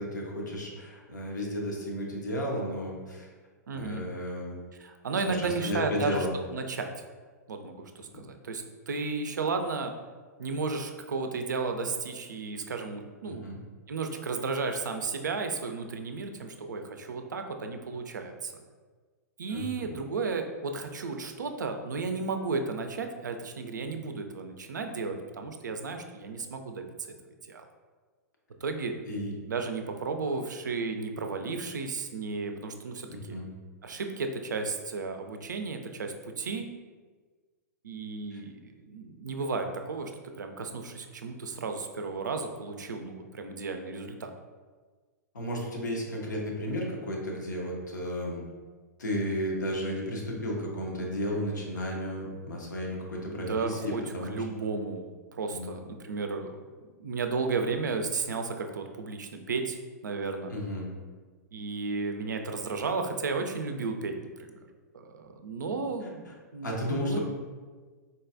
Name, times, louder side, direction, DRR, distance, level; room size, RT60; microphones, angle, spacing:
voice 1, 0.0-3.3 3.7-4.6 5.2-6.3 8.1-8.2 13.3-13.6 19.5-19.9 29.1-29.3 33.1-33.5 38.3-38.4 45.3-48.5 49.0-54.7 55.5-55.7 60.5-60.9 66.3-66.4 66.6-67.2, equal, 80° left, -1 dB, 0.8 m, -33 dB
voice 2, 3.7-4.1 4.8-6.2 6.5-6.9 7.5-9.9 10.4-13.5 13.9-18.5 19.4-26.9 27.5-27.7 28.6-28.9 29.5-33.4 33.8-36.7 37.8-40.1 40.4-44.3 53.3-56.5 57.0-60.5 61.5-64.5 65.0-67.2, right 4 dB, 80° right, 5 dB, 0.4 m, -33 dB
3.9 x 2.3 x 2.5 m, 1.4 s
figure-of-eight pair, 110°, 10 cm